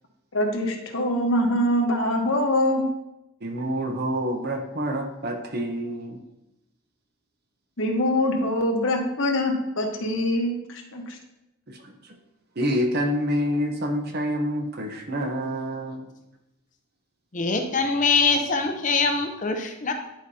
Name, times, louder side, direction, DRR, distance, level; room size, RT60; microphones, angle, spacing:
voice 1, 0.3-2.9 7.8-11.2, left 1 dB, 65° left, 1 dB, 1.1 m, -24 dB
voice 2, 3.4-6.2 11.7-12.2 12.6-16.1, equal, 50° right, 4 dB, 0.9 m, -27 dB
voice 3, 17.3-19.9, left 4 dB, 35° left, 5 dB, 0.6 m, -23 dB
10.0 x 4.8 x 2.8 m, 0.91 s
head